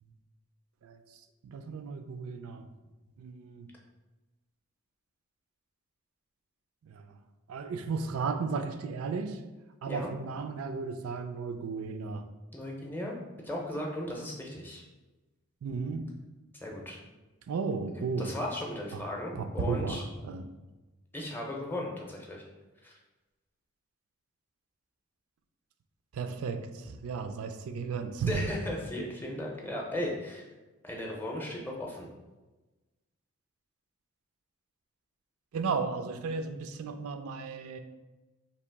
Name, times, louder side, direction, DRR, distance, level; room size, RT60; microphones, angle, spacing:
voice 1, 1.4-2.6 3.2-3.7 6.9-7.0 7.5-9.4 9.8-12.2 15.6-16.1 17.5-18.3 19.3-20.4 26.1-28.4 35.5-37.8, right 5 dB, 80° right, 7 dB, 0.4 m, -34 dB
voice 2, 12.5-13.2 13.4-14.8 16.6-17.0 17.9-20.0 21.1-22.4 22.8-22.9 28.3-30.5 30.8-32.1, left 1 dB, 10° left, -1 dB, 0.6 m, -36 dB
2.9 x 2.8 x 4.5 m, 1.1 s
head